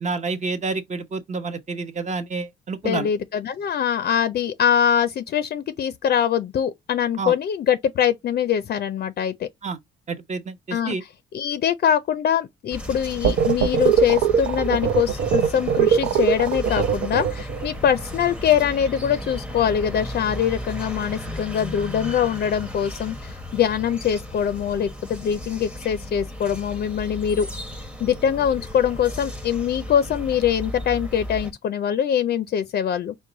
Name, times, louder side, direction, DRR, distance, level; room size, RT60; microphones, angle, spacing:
voice 1, 0.0-3.1 7.2-7.3 9.6-9.8 10.1-11.0, right 4 dB, 35° right, 0.9 m, -29 dB
voice 2, 2.8-9.5 10.7-10.9 11.3-27.5 28.0-33.1, left 9 dB, 50° left, 0.4 m, -23 dB
sound 1, 12.7-31.5, equal, 5° right, 0.9 m, -35 dB
sound 2, 13.2-17.7, right 7 dB, 80° right, 0.7 m, -21 dB
4.6 x 2.1 x 3.8 m
cardioid pair, 90°, 20 cm